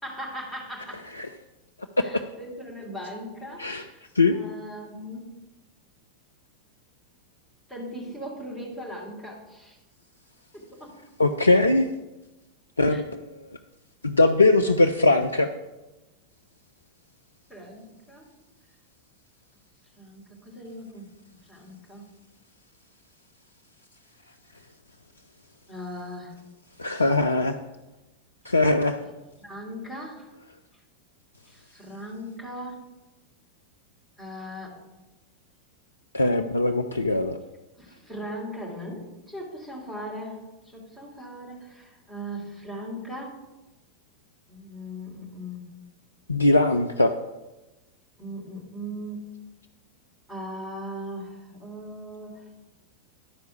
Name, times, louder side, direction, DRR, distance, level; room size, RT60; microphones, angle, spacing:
voice 1, 0.0-1.1 2.0-4.0 4.3-5.3 7.7-9.8 10.5-10.9 12.9-13.0 17.5-18.3 20.0-21.1 21.5-22.0 25.7-26.5 29.4-30.3 31.5-32.9 34.2-34.8 37.8-40.4 40.6-43.4 44.5-45.8 48.2-49.2 50.3-52.4, equal, 10° left, -3 dB, 3.0 m, -39 dB
voice 2, 11.2-11.9 12.8-13.3 14.0-15.5 26.8-27.6 28.5-29.0 36.1-37.4 46.3-47.1, left 2 dB, 80° left, 7 dB, 0.4 m, -21 dB
11.5 x 4.6 x 5.1 m, 1.0 s
figure-of-eight pair, 90°, 0 cm